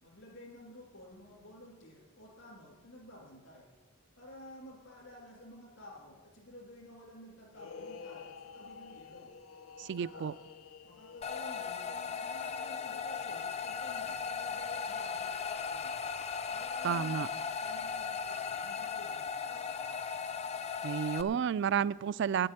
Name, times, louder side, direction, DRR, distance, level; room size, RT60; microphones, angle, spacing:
voice 1, 0.0-3.7 4.2-9.3 9.8-10.4 10.8-15.9 16.5-20.1, left 1 dB, 65° left, -6 dB, 3.0 m, -52 dB
sound 1, 7.5-16.1, left 5 dB, 90° left, 0.6 m, -52 dB
voice 2, 9.8-10.3 16.8-17.3 20.8-22.5, right 8 dB, 55° right, 20 dB, 0.3 m, -31 dB
sound 2, 11.2-21.2, left 6 dB, 30° left, 0.4 m, -37 dB
10.5 x 7.6 x 9.8 m, 1.2 s
head